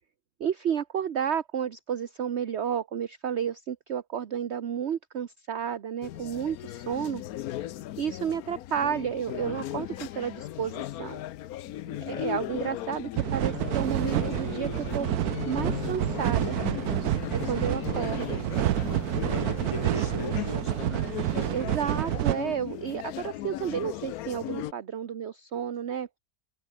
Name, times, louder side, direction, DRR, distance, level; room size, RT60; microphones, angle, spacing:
voice 1, 0.4-7.2 8.0-11.2 12.1-15.1 15.5-16.6 17.4-18.4 21.5-26.1, right 8 dB, 50° right, 1.1 m, -31 dB
sound 1, 6.0-24.7, left 13 dB, 70° left, 1.1 m, -37 dB
voice 2, 11.8-12.3 17.4-17.9 19.2-21.1, left 2 dB, 20° left, 1.7 m, -40 dB
sound 2, 13.2-22.4, right 13 dB, 70° right, 1.1 m, -29 dB
omnidirectional pair, 1.7 m